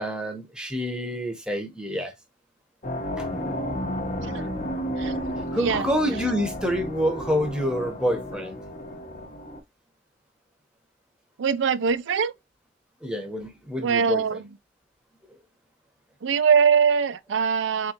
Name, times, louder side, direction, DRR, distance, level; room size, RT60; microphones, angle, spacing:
voice 1, 0.0-2.1 3.2-3.3 5.5-8.6 13.0-14.2, equal, 5° right, 0.9 m, -27 dB
sound 1, 2.8-9.6, equal, 40° left, 0.8 m, -32 dB
voice 2, 11.4-12.3 13.8-14.4 16.2-17.9, right 6 dB, 75° right, 0.4 m, -22 dB
4.0 x 3.7 x 2.8 m
head